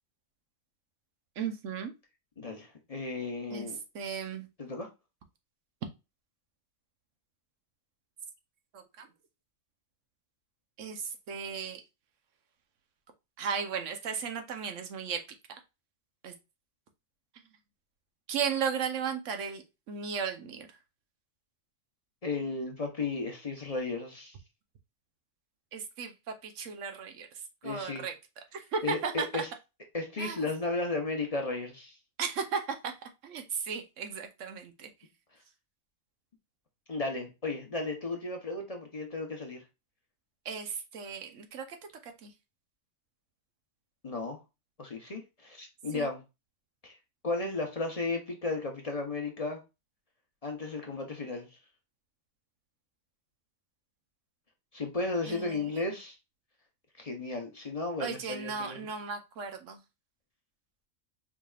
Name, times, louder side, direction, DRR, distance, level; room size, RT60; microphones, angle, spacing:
voice 1, 1.4-1.9 3.5-3.7 3.9-4.5 8.7-9.1 10.8-11.8 13.4-15.2 16.2-16.3 18.3-19.6 19.9-20.7 25.7-27.3 27.6-28.1 28.5-29.4 30.2-30.4 32.2-32.9 33.2-34.9 40.5-41.8 42.0-42.3 45.9-46.1 55.2-55.8 58.0-59.8, right 6 dB, 90° right, 1.1 m, -35 dB
voice 2, 2.4-3.8 4.6-4.9 22.2-24.4 27.6-28.0 28.8-29.5 29.9-32.0 36.9-39.6 44.0-44.4 44.8-46.2 46.8-46.9 47.2-49.6 50.4-51.5 54.7-56.2 57.0-58.8, left 3 dB, 35° left, 0.8 m, -34 dB
4.8 x 3.3 x 2.3 m
omnidirectional pair, 1.2 m